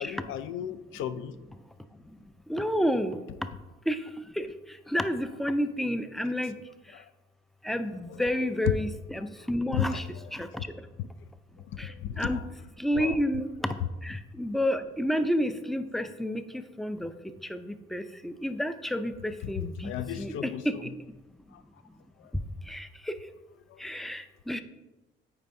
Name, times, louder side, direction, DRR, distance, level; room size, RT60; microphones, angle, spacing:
voice 1, 0.0-1.4 6.9-7.1 9.7-10.0 11.7-12.4 12.9-13.2 19.8-20.6 21.5-21.6 23.7-23.8, left 9 dB, 80° left, 0.4 m, -34 dB
voice 2, 2.5-3.2 3.9-4.0 4.4-4.5 4.9-6.5 7.7-10.0 10.3-10.5 11.8-11.9 12.2-12.4 12.8-13.5 14.0-16.4 16.8-17.1 17.5-20.9 22.7-22.9 23.8-24.6, equal, ahead, 0.4 m, -30 dB
8.7 x 4.6 x 2.6 m
cardioid pair, 90°, 20 cm